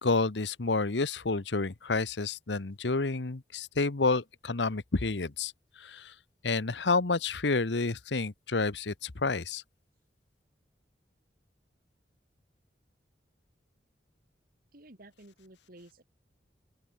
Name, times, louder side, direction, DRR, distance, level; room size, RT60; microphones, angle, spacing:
voice 1, 0.0-6.1 6.4-9.6, left 3 dB, 80° left, 1.1 m, -29 dB
voice 2, 14.7-16.0, right 1 dB, 55° right, 2.8 m, -53 dB
open air
head